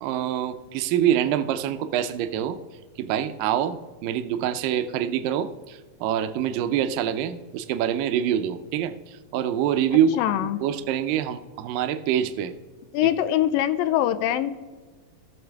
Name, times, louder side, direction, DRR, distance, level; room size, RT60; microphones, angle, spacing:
voice 1, 0.0-2.6 3.0-10.1 10.4-12.5 13.0-13.1, right 10 dB, 80° right, 11 dB, 2.2 m, -25 dB
voice 2, 10.2-10.6 12.9-14.5, left 12 dB, 80° left, 11 dB, 2.3 m, -23 dB
18.0 x 6.5 x 3.4 m, 1.4 s
omnidirectional pair, 4.3 m